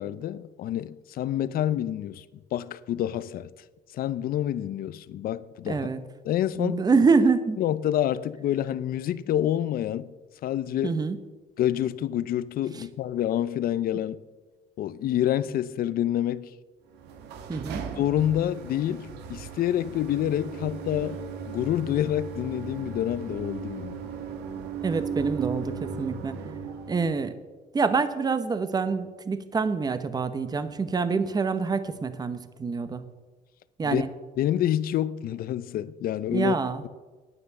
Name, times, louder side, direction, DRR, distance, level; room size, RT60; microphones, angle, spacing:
voice 1, 0.0-2.2 2.5-3.5 3.9-5.8 6.2-6.8 7.6-10.1 10.4-11.0 11.6-14.2 14.8-16.5 18.0-24.0 33.8-34.0 34.4-36.6, left 11 dB, 60° left, 0.6 m, -27 dB
voice 2, 5.7-6.0 6.6-7.6 10.8-11.2 12.7-12.8 17.5-17.8 24.8-26.4 26.9-27.4 27.7-33.0 33.8-34.1 36.3-36.8, right 4 dB, 25° right, 0.9 m, -26 dB
sound 1, 16.9-27.3, right 6 dB, 90° right, 1.3 m, -37 dB
9.9 x 9.4 x 6.7 m
cardioid pair, 110°, 17 cm